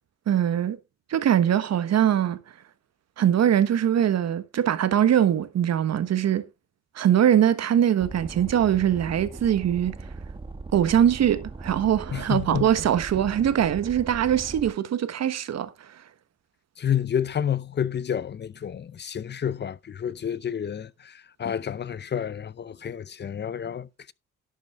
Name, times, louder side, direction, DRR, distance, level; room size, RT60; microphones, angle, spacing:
voice 1, 0.3-0.8 1.1-2.4 3.2-6.4 6.9-9.9 10.7-15.7, right 10 dB, 60° right, 1.3 m, -22 dB
sound 1, 8.0-14.7, right 3 dB, 15° right, 1.2 m, -39 dB
voice 2, 12.1-12.7 16.8-24.1, left 9 dB, 35° left, 0.6 m, -29 dB
11.5 x 7.3 x 3.7 m
cardioid pair, 90°, 30 cm